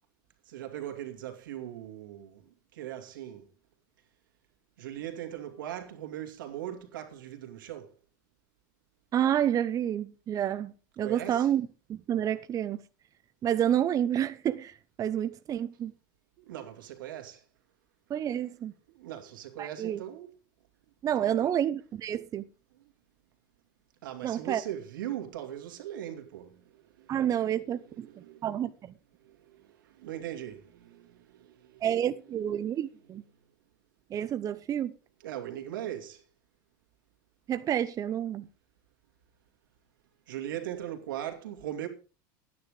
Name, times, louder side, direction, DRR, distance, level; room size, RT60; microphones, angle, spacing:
voice 1, 0.5-2.5 2.7-3.5 4.8-7.9 11.0-11.5 16.4-17.4 18.9-20.3 21.2-21.5 24.0-27.2 28.1-28.5 29.2-31.8 35.2-36.2 40.3-41.9, right 11 dB, 90° right, 2.5 m, -40 dB
voice 2, 9.1-12.8 13.4-15.9 18.1-18.7 19.6-20.0 21.0-22.5 24.2-24.6 27.1-28.9 31.8-33.2 34.1-34.9 37.5-38.5, right 10 dB, 35° right, 0.7 m, -29 dB
11.5 x 9.6 x 4.9 m
supercardioid pair, 110°, 11 cm